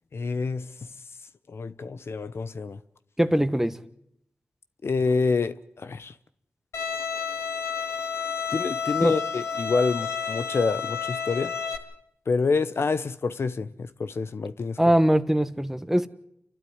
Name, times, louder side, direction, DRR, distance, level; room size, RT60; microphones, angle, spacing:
voice 1, 0.1-0.9 1.5-2.8 4.8-6.1 8.5-11.6 12.3-14.8, left 4 dB, 65° left, 0.9 m, -27 dB
voice 2, 3.2-3.8 9.0-9.1 14.8-16.1, right 1 dB, 10° right, 1.4 m, -22 dB
Bowed string instrument, 6.7-11.8, left 6 dB, 85° left, 2.0 m, -30 dB
28.5 x 12.0 x 9.4 m
cardioid pair, 40°, 5 cm